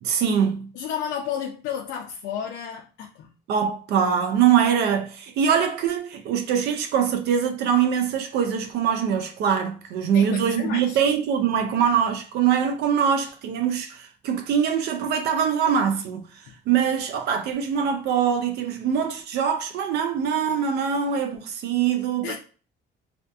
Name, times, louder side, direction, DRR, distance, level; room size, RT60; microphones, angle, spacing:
voice 1, 0.0-0.7 3.5-16.3 16.7-22.4, right 8 dB, 65° right, 0.4 m, -23 dB
voice 2, 0.7-3.3 10.1-11.0 22.2-22.4, left 8 dB, 80° left, 0.5 m, -32 dB
2.6 x 2.4 x 2.3 m
cardioid pair, 175°, 19 cm